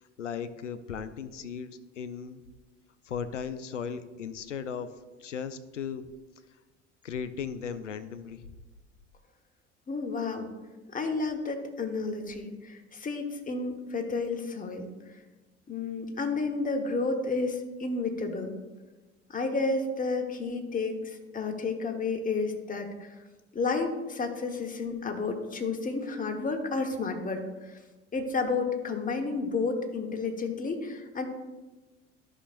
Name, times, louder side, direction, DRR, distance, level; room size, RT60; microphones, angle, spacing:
voice 1, 0.2-2.4 3.0-4.9 5.2-6.1 7.0-8.4, left 7 dB, 90° left, 13 dB, 0.5 m, -36 dB
voice 2, 9.9-10.5 10.9-14.9 15.7-18.5 19.3-23.2 23.5-27.8 28.1-31.3, left 3 dB, 20° left, 4 dB, 1.3 m, -31 dB
12.5 x 5.9 x 2.5 m, 1.2 s
figure-of-eight pair, 70°, 36 cm